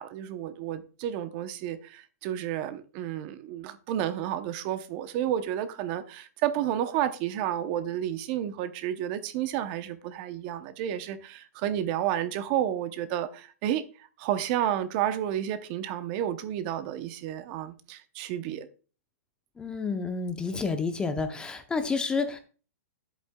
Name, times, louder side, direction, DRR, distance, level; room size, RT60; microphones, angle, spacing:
voice 1, 0.0-13.8 14.2-18.7, right 11 dB, 35° right, 0.7 m, -31 dB
voice 2, 19.6-22.4, left 4 dB, 10° left, 0.6 m, -30 dB
10.5 x 8.2 x 2.2 m
hypercardioid pair, 145°, 9 cm